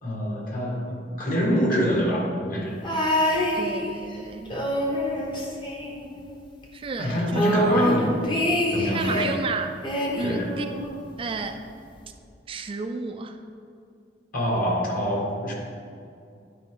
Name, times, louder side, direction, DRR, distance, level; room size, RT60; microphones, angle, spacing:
voice 1, 0.0-2.8 7.0-8.1 8.7-9.3 10.2-10.5 14.3-15.5, equal, 50° left, -3 dB, 1.8 m, -25 dB
sound 1, 2.8-4.1 4.5-6.4 6.6-6.7 7.0-9.4 9.8-11.1 12.0-12.1, equal, 30° left, 1.0 m, -26 dB
voice 2, 3.5-4.6 6.7-7.4 8.9-9.7 10.2-10.7 11.2-11.6 12.5-13.4, right 4 dB, 30° right, 6 dB, 0.3 m, -32 dB
11.0 x 4.9 x 3.8 m, 2.5 s
head